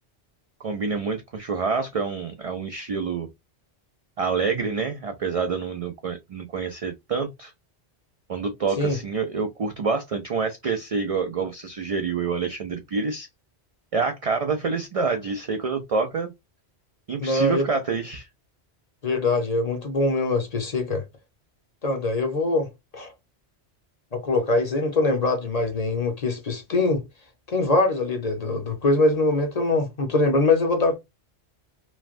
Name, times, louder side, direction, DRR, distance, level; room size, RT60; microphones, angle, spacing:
voice 1, 0.6-3.3 4.2-7.5 8.3-13.3 13.9-16.3 17.1-18.3, right 5 dB, 70° right, 0.3 m, -27 dB
voice 2, 17.2-17.7 19.0-21.0 21.8-23.1 24.1-27.0 27.5-31.0, left 2 dB, 40° left, 0.7 m, -23 dB
3.1 x 2.1 x 2.5 m
omnidirectional pair, 1.1 m